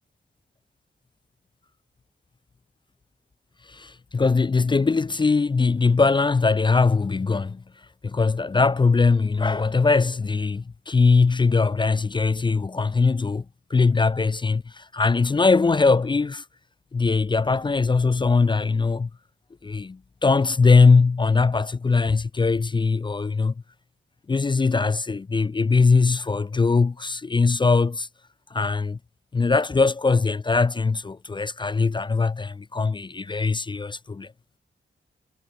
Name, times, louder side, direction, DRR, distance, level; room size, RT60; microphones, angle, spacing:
voice 1, 3.7-7.6 8.0-13.4 13.7-16.4 16.9-19.1 19.6-23.5 24.3-28.1 28.5-29.0 29.3-34.3, left 4 dB, 25° left, 0.4 m, -21 dB
cardioid pair, 80°, 19 cm